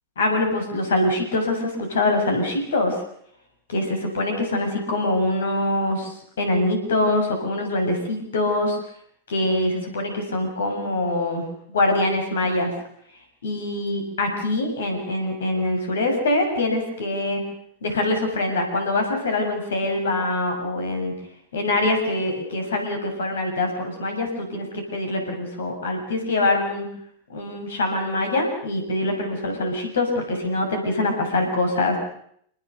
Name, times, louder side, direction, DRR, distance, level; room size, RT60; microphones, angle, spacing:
voice 1, 0.2-3.0 3.7-6.1 6.4-8.8 9.3-11.4 11.7-12.7 13.4-17.4 17.8-21.1 21.5-26.9 27.3-32.0, left 2 dB, 65° left, 4 dB, 7.2 m, -24 dB
28.0 x 20.0 x 6.9 m, 0.68 s
figure-of-eight pair, 90°, 0 cm